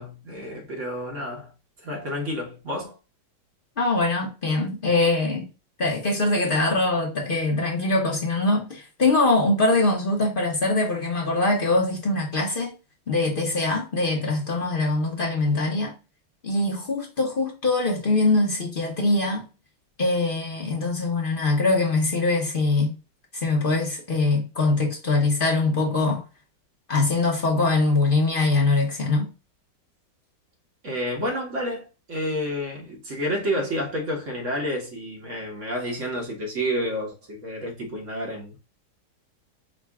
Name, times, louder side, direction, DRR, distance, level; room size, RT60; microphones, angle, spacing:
voice 1, 0.0-1.5 1.8-3.0 30.8-38.6, equal, 45° right, 1.5 m, -30 dB
voice 2, 3.8-5.5 5.8-12.7 13.1-16.0 16.4-19.5 20.0-22.9 23.3-26.2 26.9-29.3, left 2 dB, 45° left, 0.7 m, -23 dB
5.1 x 2.5 x 3.5 m
omnidirectional pair, 2.1 m